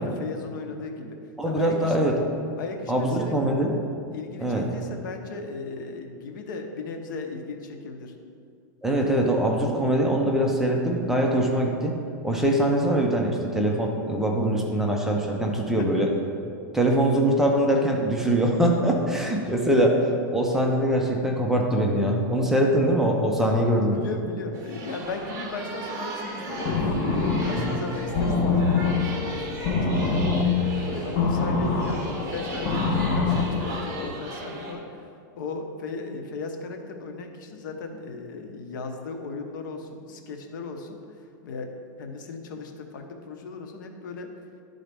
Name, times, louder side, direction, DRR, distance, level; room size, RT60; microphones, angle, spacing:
voice 1, 0.0-2.2 2.6-3.4 4.1-8.1 15.4-15.5 16.8-17.1 23.8-30.2 30.8-41.0 41.4-44.3, left 3 dB, 75° left, 4 dB, 0.8 m, -37 dB
voice 2, 1.4-2.1 2.9-3.8 4.4-4.7 8.8-12.0 12.2-16.1 16.7-24.0 27.5-27.7, right 1 dB, 5° right, 0 dB, 0.5 m, -23 dB
sound 1, 24.5-34.7, right 2 dB, 30° right, 1.2 m, -37 dB
sound 2, 26.5-34.1, left 4 dB, 35° left, 0.7 m, -25 dB
11.0 x 3.9 x 3.4 m, 2.4 s
supercardioid pair, 155°, 11 cm